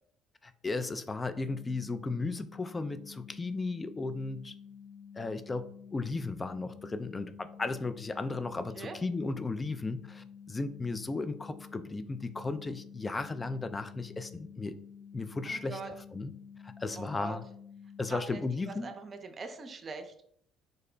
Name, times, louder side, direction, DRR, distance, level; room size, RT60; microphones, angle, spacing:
voice 1, 0.4-4.5 5.1-14.8 15.1-16.3 16.6-17.5 18.0-18.9, left 3 dB, 25° left, 11 dB, 0.4 m, -35 dB
sound 1, 1.3-18.2, left 7 dB, ahead, 0.8 m, -50 dB
voice 2, 15.5-15.9 17.0-17.4 18.1-18.4 18.7-20.1, right 4 dB, 40° right, 6 dB, 0.6 m, -42 dB
3.8 x 2.1 x 3.8 m, 0.66 s
hypercardioid pair, 65°, 0 cm